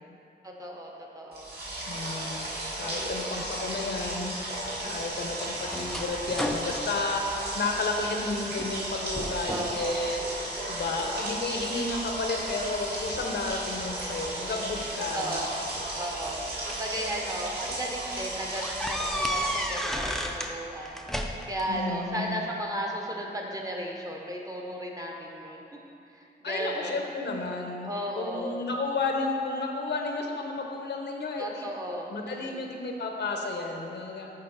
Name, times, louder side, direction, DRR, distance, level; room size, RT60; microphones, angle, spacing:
voice 1, 0.4-1.5 2.8-3.4 9.5-10.1 14.3-15.5 16.0-16.4 16.6-25.6 26.1-27.1 27.8-28.6 31.4-32.7, right 1 dB, 20° right, -1 dB, 0.7 m, -35 dB
sound 1, 1.3-19.7, right 1 dB, 60° right, 1.6 m, -35 dB
voice 2, 1.9-2.5 2.8-4.3 4.8-7.3 7.5-10.2 10.7-15.4 21.7-22.5 26.4-31.6 32.1-34.3, left 3 dB, 70° left, 2 dB, 0.7 m, -32 dB
sound 2, 4.6-8.1 8.5-8.9 9.1-9.8 10.3-11.0 11.6-13.0 14.2-14.3 15.5-16.9 17.5-17.6 17.9-18.0 18.5-20.6 20.8-21.7, equal, ahead, 0.4 m, -34 dB
6.7 x 4.1 x 5.5 m, 2.7 s
wide cardioid pair, 140°, 18 cm